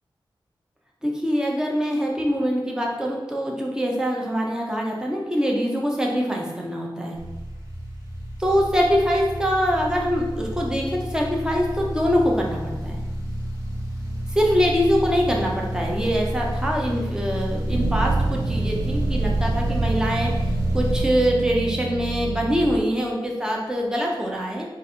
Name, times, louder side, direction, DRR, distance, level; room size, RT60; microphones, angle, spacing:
voice 1, 1.0-7.2 8.4-13.0 14.3-20.3 20.7-24.7, equal, 10° right, -1 dB, 0.7 m, -24 dB
sound 1, 7.1-21.0, equal, 35° right, 0.9 m, -29 dB
sound 2, 17.7-22.8, right 3 dB, 60° right, 0.4 m, -27 dB
4.0 x 2.5 x 4.2 m, 1.2 s
wide cardioid pair, 125°, 9 cm